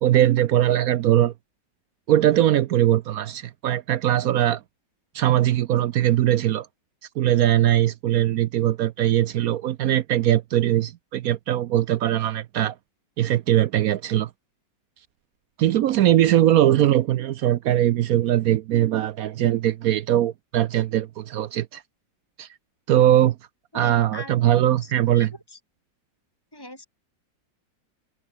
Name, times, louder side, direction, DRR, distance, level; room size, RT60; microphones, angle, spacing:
voice 1, 0.0-1.3 2.1-4.6 5.1-6.7 7.2-12.7 13.2-14.3 15.6-21.8 22.4-22.5 22.9-23.4 23.7-25.3, right 12 dB, 70° right, 0.9 m, -20 dB
voice 2, 23.7-24.3 24.8-25.6 26.5-26.9, left 1 dB, 10° left, 6.7 m, -41 dB
omnidirectional pair, 2.0 m